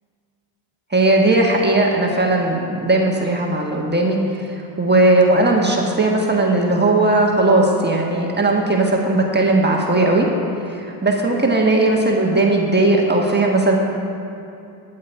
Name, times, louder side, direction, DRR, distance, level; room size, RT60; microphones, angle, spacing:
voice 1, 0.9-10.3 10.6-13.8, right 2 dB, 20° right, -1 dB, 1.5 m, -17 dB
13.0 x 7.7 x 4.5 m, 2.7 s
supercardioid pair, 75°, 50 cm